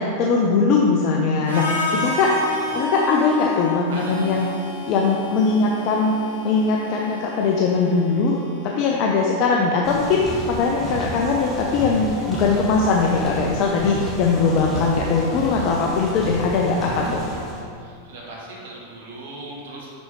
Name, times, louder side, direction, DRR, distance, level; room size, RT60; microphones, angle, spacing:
voice 1, 0.0-2.3 2.7-4.5 4.9-6.1 6.4-17.2, left 4 dB, 40° left, -1 dB, 0.5 m, -20 dB
Harmonica, 1.5-9.4, left 2 dB, 90° right, 1.4 m, -30 dB
voice 2, 1.9-2.6 3.9-4.2 13.8-14.0 15.5-15.8 17.8-19.9, right 2 dB, 55° right, -3 dB, 1.1 m, -39 dB
sound 1, 9.8-17.6, equal, 10° left, 1.2 m, -31 dB
6.1 x 5.2 x 3.1 m, 2.3 s
figure-of-eight pair, 90°, 0 cm